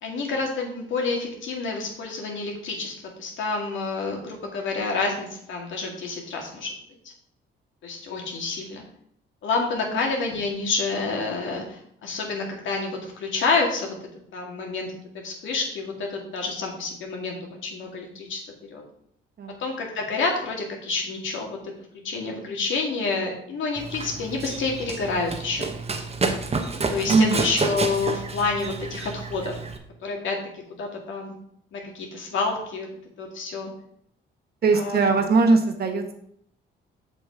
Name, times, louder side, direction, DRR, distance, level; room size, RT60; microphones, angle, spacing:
voice 1, 0.0-2.9 3.2-6.8 7.8-8.8 9.4-14.0 14.3-17.3 17.6-18.4 18.7-18.8 19.6-21.6 22.0-25.7 26.9-29.5 30.0-31.3 31.7-33.7 34.7-35.1, left 3 dB, 75° left, 0 dB, 2.4 m, -28 dB
Run, 23.8-29.8, right 4 dB, 30° right, 1.2 m, -29 dB
voice 2, 27.1-27.4 34.6-36.1, right 3 dB, 50° right, 5 dB, 1.5 m, -20 dB
6.9 x 6.1 x 4.9 m, 0.70 s
cardioid pair, 90°, 20 cm